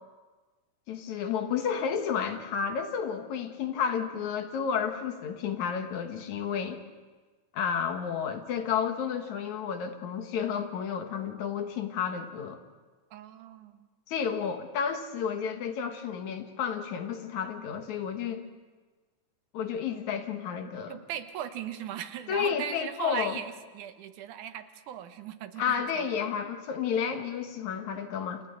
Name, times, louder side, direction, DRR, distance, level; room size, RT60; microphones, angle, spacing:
voice 1, 0.9-6.8 7.5-12.6 14.1-18.4 19.5-20.9 22.3-23.4 25.6-28.4, left 7 dB, 75° left, 6 dB, 2.8 m, -31 dB
voice 2, 13.1-13.9 20.9-26.1, right 10 dB, 90° right, 10 dB, 2.5 m, -38 dB
29.5 x 28.5 x 3.9 m, 1.3 s
omnidirectional pair, 3.4 m